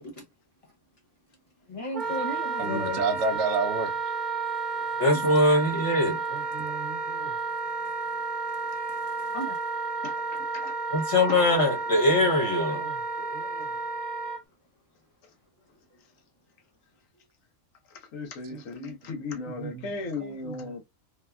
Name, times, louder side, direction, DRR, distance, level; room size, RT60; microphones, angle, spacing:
voice 1, 1.7-3.0 5.0-6.2 9.3-9.5 10.9-12.8, left 1 dB, 45° left, 0.4 m, -24 dB
Wind instrument woodwind instrument, 1.9-14.4, right 4 dB, 40° right, 0.9 m, -31 dB
voice 2, 2.6-3.9 6.3-7.3 12.4-13.7 18.5-19.9 20.2-20.7, right 4 dB, 70° right, 0.9 m, -33 dB
voice 3, 10.0-10.7 11.3-11.4 17.9-20.8, left 4 dB, 85° left, 1.2 m, -37 dB
3.3 x 2.2 x 2.2 m
omnidirectional pair, 1.3 m